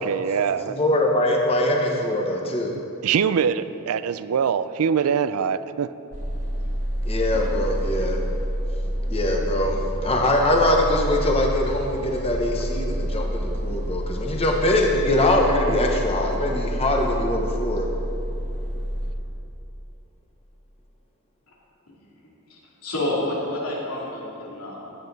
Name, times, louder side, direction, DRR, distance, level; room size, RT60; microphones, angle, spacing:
voice 1, 0.0-0.8 2.7-5.9, right 7 dB, 75° right, 14 dB, 0.4 m, -23 dB
voice 2, 0.7-2.7 7.0-8.2 9.1-17.9, left 1 dB, 25° left, 1 dB, 0.9 m, -22 dB
sound 1, 6.1-19.1, equal, 40° right, 1.4 m, -28 dB
voice 3, 22.5-24.9, left 1 dB, 80° left, -4 dB, 2.6 m, -29 dB
16.0 x 8.0 x 4.0 m, 2.9 s
head